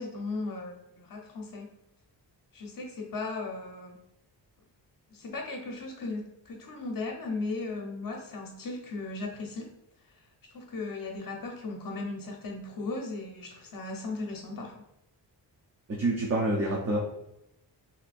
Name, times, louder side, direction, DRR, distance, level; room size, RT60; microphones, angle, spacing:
voice 1, 0.0-1.7 2.5-4.0 5.1-9.7 10.5-14.8, left 3 dB, 50° left, 1 dB, 0.7 m, -37 dB
voice 2, 15.9-17.0, right 2 dB, 35° right, -2 dB, 0.6 m, -27 dB
2.8 x 2.6 x 4.1 m, 0.81 s
wide cardioid pair, 155°, 44 cm